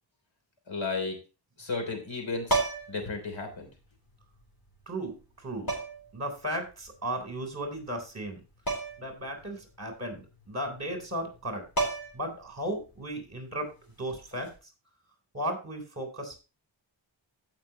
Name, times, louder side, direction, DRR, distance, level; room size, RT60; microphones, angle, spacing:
voice 1, 0.7-1.2 1.6-2.6 2.9-3.7, left 3 dB, 70° left, 4 dB, 3.5 m, -33 dB
sound 1, 2.5-3.1 4.4-4.5 5.7-6.1 8.7-9.1 9.4-9.5 11.3-11.4 11.8-12.3 14.3-14.5, right 2 dB, 50° left, 3.5 m, -30 dB
voice 2, 4.9-5.7 6.1-8.4 9.0-11.9 12.1-13.7 14.0-14.5 15.3-16.4, right 1 dB, 35° right, 4 dB, 3.7 m, -35 dB
16.0 x 5.9 x 2.9 m, 0.31 s
wide cardioid pair, 100°, 47 cm